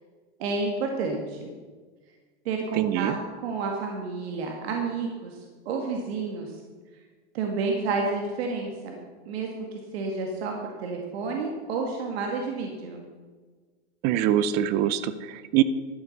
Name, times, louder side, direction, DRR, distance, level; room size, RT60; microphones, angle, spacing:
voice 1, 0.4-1.5 2.5-3.1 3.4-5.4 5.7-6.6 7.3-9.0 9.3-9.7 9.9-10.5 10.8-13.0, right 4 dB, 65° right, 2 dB, 2.1 m, -30 dB
voice 2, 2.7-3.2 14.0-15.6, right 11 dB, 30° right, 15 dB, 0.5 m, -24 dB
12.5 x 8.5 x 6.6 m, 1.4 s
supercardioid pair, 155°, 33 cm